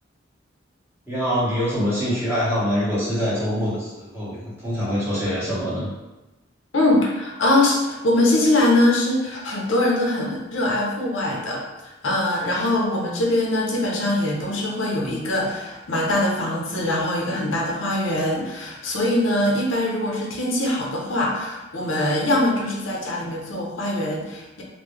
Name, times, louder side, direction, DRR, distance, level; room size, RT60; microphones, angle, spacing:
voice 1, 1.1-5.9, equal, 10° right, -10 dB, 1.3 m, -24 dB
voice 2, 6.7-24.6, left 1 dB, 80° left, -2 dB, 0.7 m, -22 dB
3.7 x 2.2 x 3.2 m, 1.1 s
head